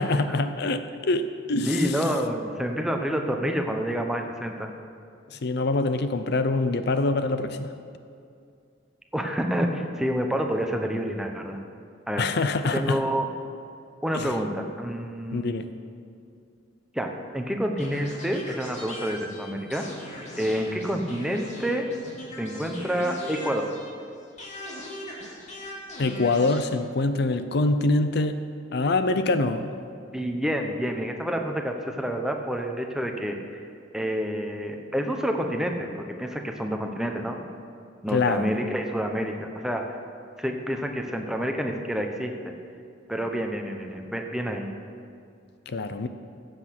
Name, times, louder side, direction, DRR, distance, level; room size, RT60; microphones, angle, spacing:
voice 1, 0.0-1.8 5.3-7.7 12.2-13.0 14.1-14.3 15.3-15.7 26.0-28.4 28.7-29.8 38.1-38.5 45.7-46.1, left 2 dB, 60° left, 10 dB, 0.6 m, -25 dB
voice 2, 1.7-4.7 9.1-11.6 12.1-12.2 12.7-13.3 14.0-15.6 16.9-19.8 20.4-21.9 22.4-23.7 30.1-33.4 33.9-35.9 36.2-37.4 38.0-39.8 40.4-42.3 43.1-44.7, equal, 5° right, 3 dB, 0.9 m, -28 dB
sound 1, 17.8-24.0 24.4-26.6, left 1 dB, 40° left, 2.5 m, -40 dB
15.5 x 7.9 x 5.9 m, 2.4 s
head